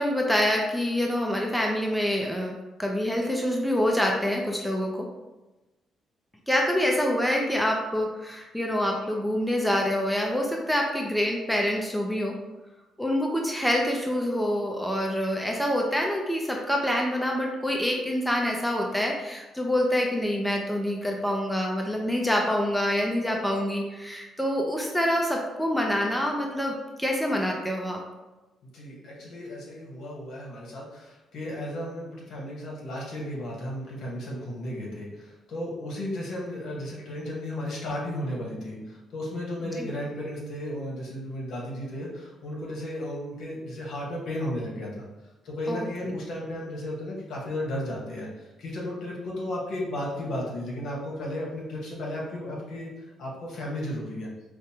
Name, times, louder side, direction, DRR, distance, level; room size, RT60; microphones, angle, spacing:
voice 1, 0.0-5.1 6.5-12.4 13.0-28.0 39.8-39.9 45.7-46.2, equal, ahead, 0 dB, 0.5 m, -26 dB
voice 2, 28.7-45.0 45.4-52.9 53.2-54.3, left 1 dB, 70° left, -3 dB, 1.2 m, -34 dB
5.0 x 2.1 x 2.8 m, 1.1 s
cardioid pair, 90°, 0 cm